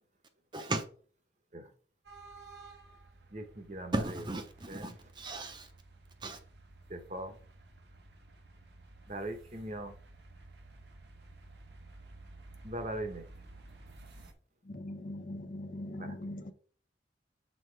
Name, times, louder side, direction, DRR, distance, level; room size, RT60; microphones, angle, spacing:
voice 1, 0.5-0.8 3.9-5.7 6.2-6.4, right 2 dB, 25° right, 0.7 m, -36 dB
sound 1, 2.0-14.3, right 2 dB, 75° right, 1.0 m, -54 dB
voice 2, 3.3-4.2 4.7-5.0 5.3-5.5 6.9-7.4 9.1-9.9 12.6-13.2 15.9-16.2, right 1 dB, 40° right, 1.0 m, -40 dB
voice 3, 14.6-16.5, left 1 dB, 45° left, 0.6 m, -41 dB
6.3 x 4.4 x 3.3 m
head